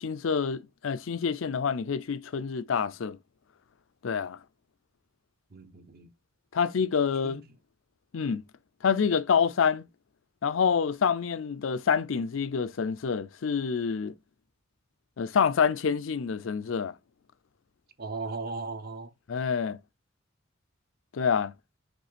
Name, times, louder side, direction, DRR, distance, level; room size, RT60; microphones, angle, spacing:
voice 1, 0.0-3.2 4.0-4.4 6.5-7.4 8.1-8.4 8.8-9.8 10.4-14.1 15.2-16.9 19.3-19.8 21.1-21.5, left 6 dB, 90° left, 0.5 m, -27 dB
voice 2, 5.5-6.1 7.2-7.6 18.0-19.1, right 3 dB, 50° right, 0.8 m, -37 dB
5.2 x 3.6 x 5.0 m
head